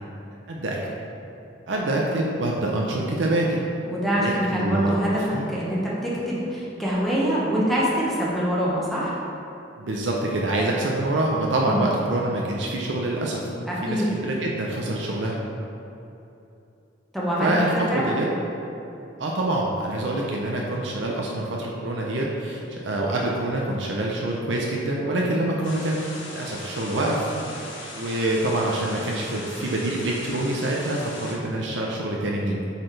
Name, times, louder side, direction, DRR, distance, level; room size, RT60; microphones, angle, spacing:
voice 1, 0.5-0.8 1.7-3.6 4.1-4.9 5.3-5.5 9.8-13.5 13.8-15.4 17.4-18.3 19.2-26.0 26.3-27.3 27.9-32.6, right 1 dB, 75° right, -2 dB, 0.6 m, -26 dB
voice 2, 3.8-5.2 5.5-9.1 11.7-11.8 13.7-14.1 17.1-18.2, equal, ahead, -7 dB, 1.0 m, -24 dB
sound 1, 25.6-31.3, left 2 dB, 90° left, 1.4 m, -39 dB
8.1 x 4.1 x 3.3 m, 2.8 s
head